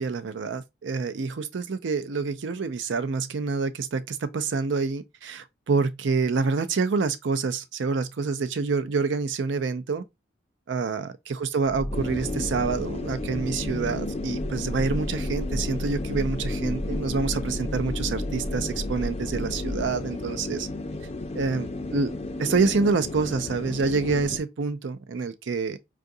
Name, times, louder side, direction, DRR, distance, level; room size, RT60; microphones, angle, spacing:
voice 1, 0.0-10.0 10.7-20.7 21.3-22.1 22.4-25.8, right 4 dB, 70° right, 0.5 m, -27 dB
sound 1, 11.6-19.9, equal, 15° right, 0.8 m, -34 dB
sound 2, 11.9-24.4, left 2 dB, 35° left, 0.4 m, -33 dB
4.7 x 2.4 x 2.6 m
head